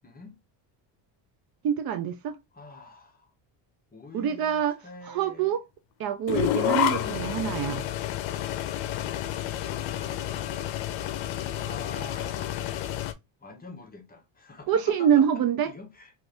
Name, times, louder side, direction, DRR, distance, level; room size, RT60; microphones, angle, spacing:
voice 1, 0.0-0.4 2.5-3.3 3.9-5.6 7.0-7.6 9.7-10.5 11.5-12.6 13.4-16.1, left 3 dB, 20° left, 0.6 m, -45 dB
voice 2, 1.6-2.4 4.1-4.7 5.1-5.6 6.0-7.7 14.7-15.7, right 9 dB, 55° right, 0.5 m, -25 dB
sound 1, 6.3-13.1, left 12 dB, 85° left, 0.6 m, -30 dB
2.5 x 2.5 x 3.3 m
cardioid pair, 135°, 46 cm